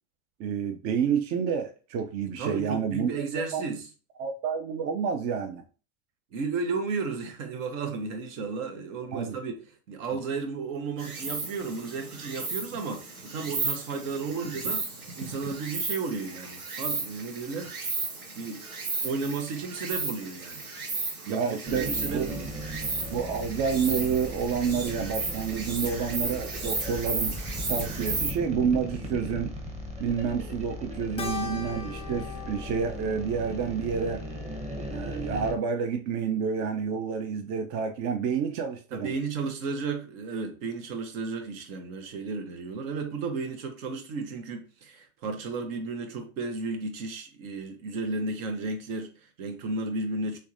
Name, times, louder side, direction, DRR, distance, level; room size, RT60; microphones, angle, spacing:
voice 1, 0.4-3.6 4.2-5.6 9.1-9.4 21.3-22.3 23.1-27.4 27.7-29.5 30.0-34.2 34.9-39.1, right 6 dB, 40° right, 0.5 m, -29 dB
voice 2, 2.4-3.9 6.3-9.5 9.9-14.8 15.1-17.7 18.3-18.7 19.0-20.7 21.3-22.6 38.9-50.4, right 4 dB, 65° right, 1.0 m, -33 dB
Insect, 11.0-28.3, right 3 dB, 85° right, 1.0 m, -34 dB
sound 1, 21.7-35.5, equal, 15° right, 0.9 m, -37 dB
Keyboard (musical), 31.2-35.8, left 7 dB, 15° left, 0.3 m, -41 dB
3.3 x 3.2 x 2.5 m
figure-of-eight pair, 75°, 43 cm